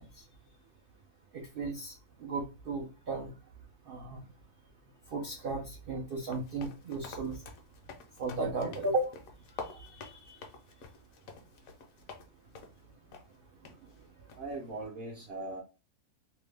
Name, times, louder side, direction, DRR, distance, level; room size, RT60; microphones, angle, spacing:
voice 1, 1.3-1.9 2.2-3.3 3.9-4.3 5.1-7.4 8.2-9.1 9.6-10.4, right 3 dB, 80° right, 1 dB, 0.5 m, -35 dB
sound 1, 6.3-12.3 12.6-12.8 13.1-13.2 13.7-13.8 14.3-14.6, left 5 dB, 65° left, 1.0 m, -48 dB
voice 2, 14.3-15.6, right 2 dB, 55° right, -2 dB, 0.8 m, -40 dB
2.9 x 2.1 x 3.2 m, 0.30 s
omnidirectional pair, 1.6 m